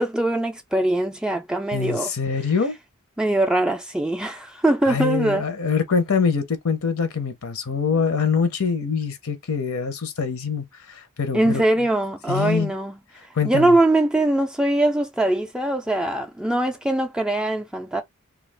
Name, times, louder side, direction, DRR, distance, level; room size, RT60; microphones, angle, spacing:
voice 1, 0.0-2.1 3.2-5.4 11.3-18.0, right 1 dB, 5° right, 0.3 m, -22 dB
voice 2, 1.7-2.7 4.9-11.6 12.3-12.7 13.3-13.8, left 5 dB, 70° left, 0.7 m, -24 dB
2.3 x 2.3 x 3.3 m
head